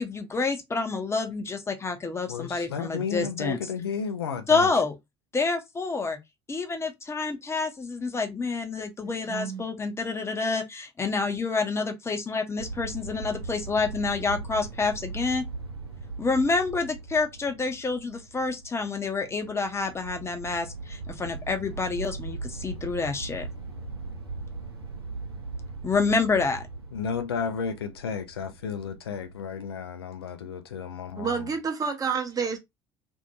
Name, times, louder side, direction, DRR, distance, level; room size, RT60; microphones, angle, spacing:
voice 1, 0.0-3.6 4.5-4.9 5.3-6.2 6.5-15.4 16.2-23.5 25.8-26.6, left 4 dB, 20° left, 0.8 m, -28 dB
voice 2, 2.3-4.7 26.9-31.5, left 6 dB, 75° left, 0.4 m, -33 dB
voice 3, 9.2-9.6 31.2-32.6, right 5 dB, 30° right, 0.9 m, -29 dB
sound 1, 12.6-29.5, right 3 dB, 75° right, 0.7 m, -39 dB
2.7 x 2.5 x 2.8 m
figure-of-eight pair, 60°, 13 cm